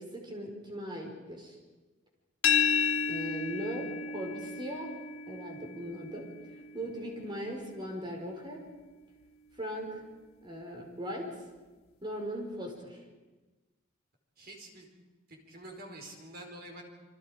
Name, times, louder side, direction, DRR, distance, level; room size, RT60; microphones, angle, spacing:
voice 1, 0.0-1.6 3.1-4.9 5.3-6.3 6.7-8.6 9.6-10.0 10.4-11.3 12.0-13.0, equal, 25° right, 1 dB, 5.1 m, -39 dB
sound 1, 2.4-8.2, left 6 dB, 80° left, 1.4 m, -33 dB
voice 2, 14.4-14.9 15.3-16.8, right 1 dB, 50° right, 2 dB, 4.8 m, -47 dB
28.0 x 25.0 x 5.2 m, 1.2 s
head